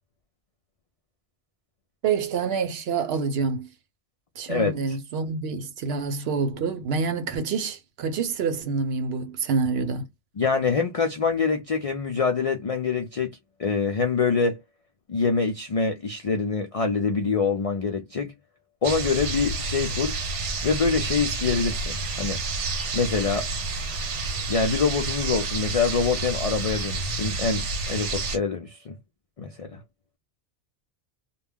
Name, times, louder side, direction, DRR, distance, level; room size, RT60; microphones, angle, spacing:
voice 1, 2.0-3.7 4.4-10.1, right 5 dB, 65° right, 0.8 m, -27 dB
voice 2, 4.5-5.0 10.4-13.3 13.6-14.6 15.1-18.3 18.8-20.2 20.6-22.4 22.9-23.5 24.5-28.9 29.4-29.8, left 5 dB, 60° left, 0.3 m, -25 dB
sound 1, 18.8-28.4, right 3 dB, 85° right, 1.1 m, -29 dB
2.2 x 2.1 x 3.4 m
omnidirectional pair, 1.2 m